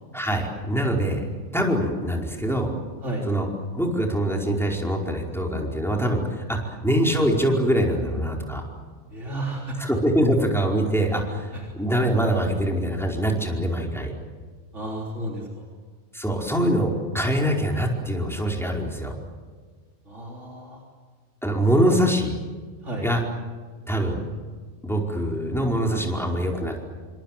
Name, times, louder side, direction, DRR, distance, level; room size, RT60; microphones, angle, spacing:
voice 1, 0.1-1.2 1.5-2.7 3.2-3.5 3.7-8.6 9.8-14.1 16.1-19.1 21.4-22.3 23.0-23.2 23.9-24.2 24.8-26.8, equal, ahead, 0 dB, 4.9 m, -24 dB
voice 2, 9.1-9.8 11.5-11.6 14.7-15.7 20.1-20.8 22.8-23.1, right 1 dB, 90° right, -1 dB, 4.1 m, -32 dB
28.0 x 25.0 x 7.6 m, 1.5 s
omnidirectional pair, 1.2 m